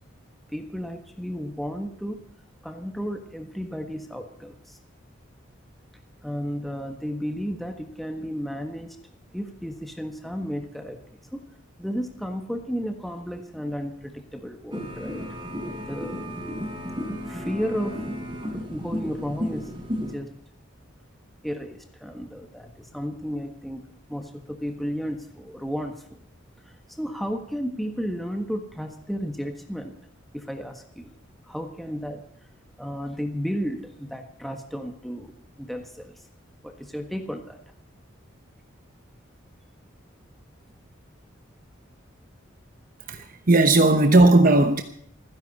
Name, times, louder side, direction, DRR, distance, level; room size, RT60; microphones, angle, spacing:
voice 1, 0.5-2.2 2.6-4.8 6.2-9.0 9.3-11.0 11.3-11.4 11.8-15.2 15.8-16.3 17.2-18.0 18.7-19.7 20.0-20.3 21.4-26.1 26.6-30.0 30.3-31.1 31.4-32.2 32.8-35.3 35.6-36.2 36.6-37.6, equal, ahead, 1.4 m, -33 dB
sound 1, 14.7-20.2, equal, 25° right, 5.0 m, -33 dB
voice 2, 43.1-44.8, right 2 dB, 40° right, 1.0 m, -17 dB
29.0 x 10.5 x 4.2 m
head